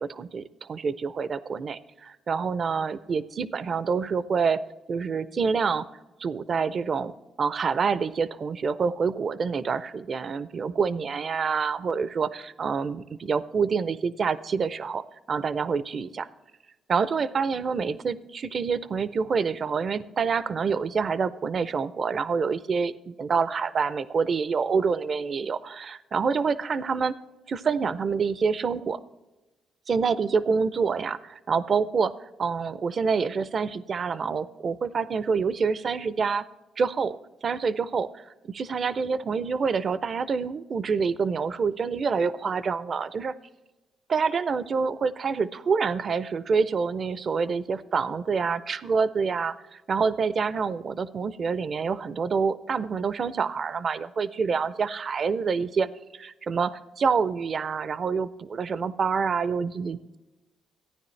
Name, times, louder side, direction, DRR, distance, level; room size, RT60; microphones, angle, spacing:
voice 1, 0.0-4.6 4.9-5.9 6.2-7.1 7.4-16.3 16.9-27.1 27.5-29.0 29.9-32.1 32.4-36.5 36.8-37.2 37.4-43.3 44.1-55.9 56.1-60.2, right 5 dB, 45° right, 16 dB, 0.5 m, -27 dB
14.5 x 9.7 x 3.2 m, 1.1 s
cardioid pair, 90°, 0 cm